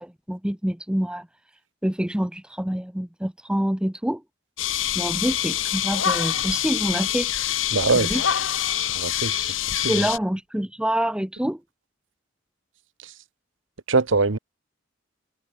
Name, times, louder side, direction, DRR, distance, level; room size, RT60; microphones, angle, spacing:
voice 1, 0.0-1.3 1.8-4.2 4.9-7.3 7.9-8.2 9.5-9.6 9.8-11.6, equal, 5° right, 0.6 m, -26 dB
sound 1, 4.6-10.2, left 11 dB, 80° left, 1.2 m, -25 dB
voice 2, 7.7-8.2 8.8-9.4 9.7-10.0 13.0-13.1 13.9-14.4, right 3 dB, 80° right, 1.1 m, -23 dB
head